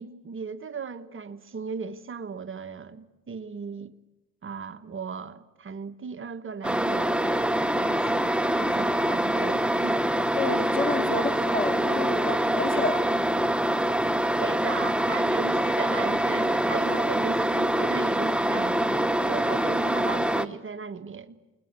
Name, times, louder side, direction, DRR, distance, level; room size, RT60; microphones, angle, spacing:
voice 1, 0.0-3.9 4.4-10.0 12.9-13.0 14.4-21.4, right 5 dB, 45° right, 1.5 m, -37 dB
sound 1, 6.6-20.5, right 1 dB, 5° right, 1.3 m, -25 dB
voice 2, 10.3-12.9, left 3 dB, 30° left, 3.0 m, -30 dB
29.5 x 21.5 x 8.3 m
cardioid pair, 90°, 30 cm